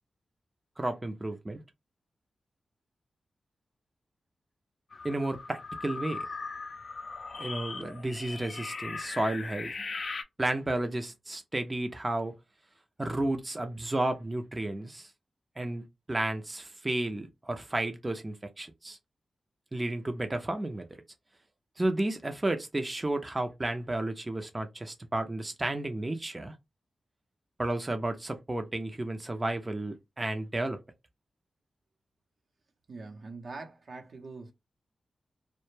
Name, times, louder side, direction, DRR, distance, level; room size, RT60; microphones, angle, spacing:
voice 1, 0.8-1.6 5.0-6.3 7.4-9.7 10.4-12.3 13.0-15.1 15.6-19.0 19.7-20.9 21.8-26.5 27.6-30.8, right 1 dB, 25° right, 0.5 m, -32 dB
sound 1, 4.9-10.2, left 4 dB, 60° left, 0.4 m, -39 dB
voice 2, 32.9-34.5, right 3 dB, 70° right, 0.7 m, -43 dB
2.1 x 2.1 x 3.1 m
cardioid pair, 50°, 0 cm